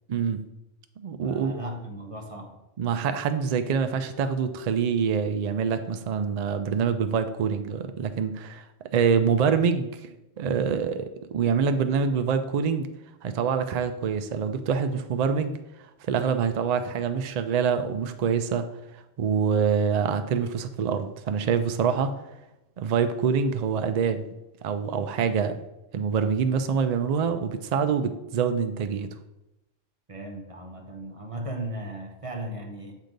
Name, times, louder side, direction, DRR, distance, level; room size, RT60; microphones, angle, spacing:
voice 1, 0.1-0.4 1.0-1.5 2.8-8.6 8.9-12.9 13.2-15.5 16.1-18.7 19.2-22.1 22.8-24.3 24.6-25.5 25.9-29.1, right 6 dB, 85° right, 9 dB, 0.3 m, -25 dB
voice 2, 1.2-2.6 30.1-32.9, right 1 dB, 35° right, 2 dB, 0.7 m, -36 dB
7.7 x 2.8 x 5.1 m, 0.93 s
omnidirectional pair, 1.3 m